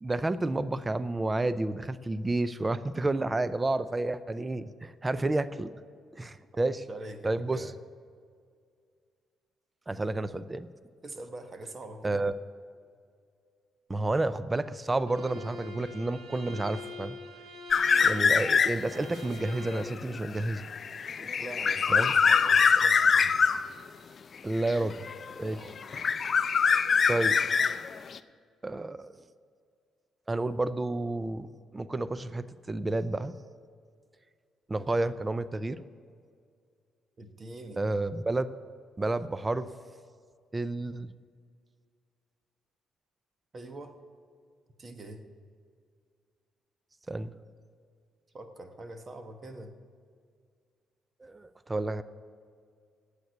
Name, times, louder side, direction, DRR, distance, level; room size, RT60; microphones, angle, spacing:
voice 1, 0.0-5.7 6.2-6.8 7.2-7.7 9.9-10.7 12.0-12.3 13.9-17.1 18.0-20.6 21.2-21.3 21.9-22.1 24.4-25.0 25.4-25.6 27.1-27.4 28.6-29.1 30.3-31.5 31.7-33.3 34.7-35.8 37.8-38.5 39.0-39.7 40.5-41.1 47.1-47.3 51.2-52.0, right 2 dB, 20° right, 14 dB, 0.5 m, -30 dB
voice 2, 6.6-7.8 11.0-12.2 21.4-23.4 25.5-25.7 37.2-37.8 43.5-44.0 44.8-45.3 48.3-49.7, right 2 dB, 35° right, 7 dB, 1.3 m, -43 dB
Bowed string instrument, 15.1-20.0, left 3 dB, 80° right, 1.4 m, -44 dB
sound 1, 17.7-19.0 19.4-23.7 24.7-25.5 25.8-28.2, left 6 dB, 45° left, 0.5 m, -24 dB
9.2 x 8.2 x 8.0 m, 2.1 s
cardioid pair, 90°, 0 cm